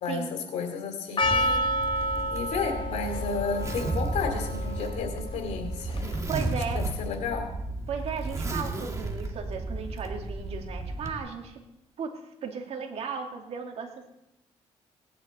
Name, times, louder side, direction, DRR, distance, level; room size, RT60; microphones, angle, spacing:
voice 1, 0.0-1.6 2.3-5.9 6.7-7.5, left 5 dB, 85° left, 5 dB, 2.7 m, -32 dB
Percussion, 1.2-6.4, equal, 45° left, 1.0 m, -30 dB
Zipper (clothing), 1.2-11.1, right 2 dB, 25° right, 1.9 m, -33 dB
voice 2, 6.3-6.8 7.9-11.6 12.0-12.1 12.4-13.9, right 6 dB, 65° right, 2 dB, 2.4 m, -35 dB
18.5 x 10.5 x 4.3 m, 0.86 s
cardioid pair, 90°, 11 cm